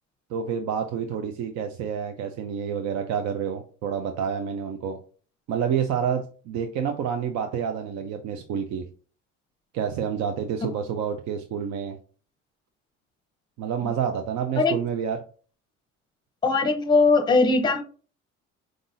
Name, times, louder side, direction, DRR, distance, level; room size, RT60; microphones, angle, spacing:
voice 1, 0.3-5.0 5.5-8.8 9.7-12.0 13.6-15.2, right 7 dB, 65° right, 0.6 m, -28 dB
voice 2, 16.4-17.8, left 3 dB, 15° left, 0.7 m, -20 dB
4.9 x 3.8 x 2.6 m
cardioid pair, 135°, 30 cm